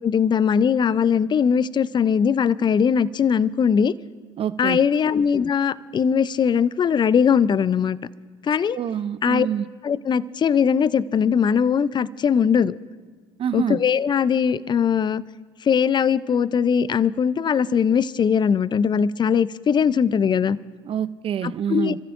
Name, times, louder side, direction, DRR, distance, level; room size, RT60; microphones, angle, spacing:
voice 1, 0.0-3.9 4.6-8.0 8.4-8.8 9.2-9.5 9.8-12.7 13.5-15.2 15.6-20.6 21.4-21.9, left 7 dB, 35° left, 18 dB, 0.5 m, -20 dB
voice 2, 4.4-4.8 8.7-9.7 13.4-13.8 20.8-22.0, right 8 dB, 40° right, 16 dB, 0.6 m, -26 dB
28.0 x 14.0 x 2.6 m, 1.5 s
hypercardioid pair, 60°, 14 cm